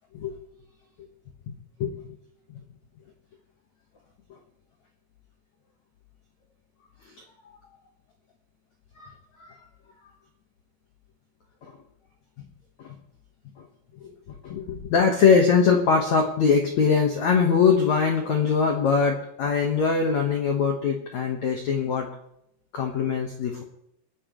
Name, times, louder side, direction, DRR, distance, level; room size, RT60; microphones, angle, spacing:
voice 1, 14.0-22.1 22.7-23.6, left 5 dB, 70° left, 2 dB, 1.7 m, -22 dB
28.5 x 10.5 x 3.2 m, 0.78 s
omnidirectional pair, 5.5 m